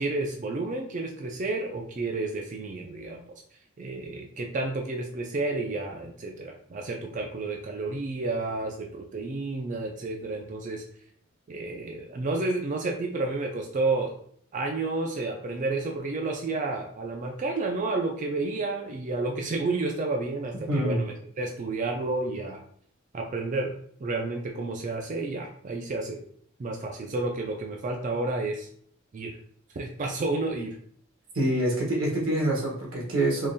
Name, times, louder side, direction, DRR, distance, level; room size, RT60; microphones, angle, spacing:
voice 1, 0.0-3.3 3.8-10.8 11.5-14.1 14.5-22.6 23.1-23.7 24.0-26.2 26.6-28.7 29.1-29.4 29.7-30.8, right 3 dB, 40° right, 2 dB, 0.4 m, -31 dB
voice 2, 20.7-21.0 31.3-33.5, right 1 dB, 90° right, -2 dB, 1.3 m, -26 dB
3.7 x 2.9 x 2.7 m, 0.62 s
head